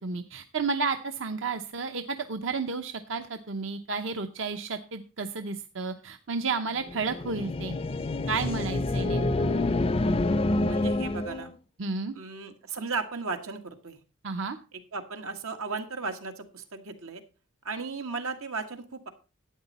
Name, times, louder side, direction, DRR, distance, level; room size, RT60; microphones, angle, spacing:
voice 1, 0.0-7.8 8.3-9.5 11.8-12.1 14.2-14.6, right 4 dB, 65° right, 7 dB, 0.8 m, -32 dB
sound 1, 6.9-11.5, left 2 dB, 25° left, 0.4 m, -27 dB
voice 2, 10.7-11.5 12.1-14.0 14.9-17.2 17.7-19.1, right 4 dB, 90° right, 5 dB, 1.8 m, -35 dB
12.0 x 9.1 x 4.2 m, 0.33 s
head